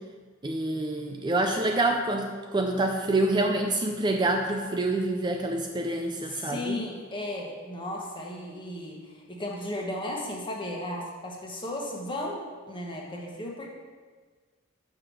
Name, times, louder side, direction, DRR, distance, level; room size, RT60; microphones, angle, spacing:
voice 1, 0.4-6.7, right 2 dB, 20° right, 3 dB, 0.4 m, -27 dB
voice 2, 6.2-13.7, left 1 dB, 25° left, -1 dB, 1.2 m, -35 dB
5.8 x 5.2 x 6.2 m, 1.5 s
head